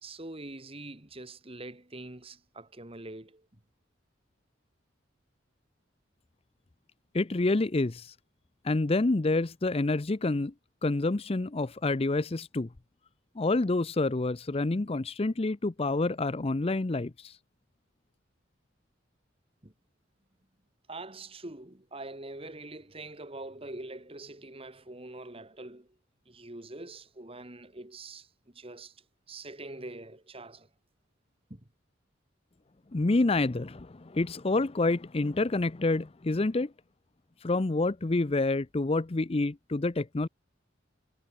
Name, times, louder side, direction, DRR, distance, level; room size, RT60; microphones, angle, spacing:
voice 1, 0.0-3.5 19.6-19.7 20.9-25.9 26.3-30.7 31.5-31.7, right 2 dB, 30° right, 2.3 m, -44 dB
voice 2, 7.1-8.1 8.6-10.5 10.8-12.7 13.4-17.4 32.9-36.7 37.4-40.3, left 2 dB, 30° left, 0.6 m, -28 dB
head